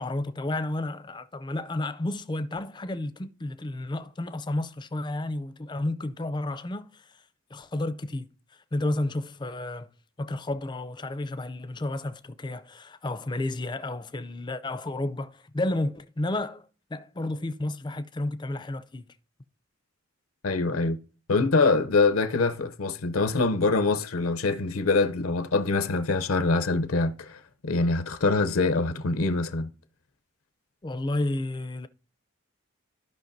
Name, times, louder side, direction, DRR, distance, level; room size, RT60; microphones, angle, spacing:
voice 1, 0.0-7.2 7.5-9.9 10.2-19.1 30.8-31.9, left 2 dB, 20° left, 0.4 m, -32 dB
voice 2, 20.4-21.0 21.3-29.7, left 3 dB, 80° left, 0.7 m, -24 dB
14.5 x 5.4 x 2.7 m
head